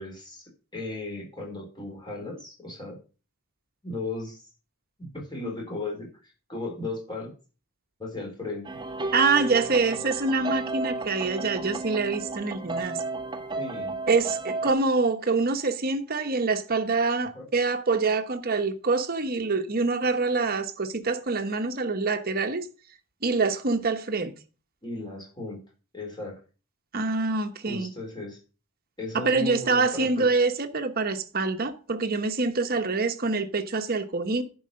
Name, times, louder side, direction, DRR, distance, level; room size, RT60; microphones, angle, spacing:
voice 1, 0.0-3.0 3.8-4.5 5.0-7.3 8.0-8.8 13.6-14.0 17.3-17.4 24.8-25.6 25.9-26.4 27.7-28.4 29.0-30.3, left 2 dB, 20° left, 3.6 m, -36 dB
sound 1, 8.6-14.7, right 3 dB, 20° right, 0.8 m, -33 dB
voice 2, 9.1-13.0 14.1-22.7 23.2-24.3 26.9-27.9 29.1-34.4, right 4 dB, 45° right, 1.0 m, -25 dB
11.0 x 4.8 x 6.3 m
head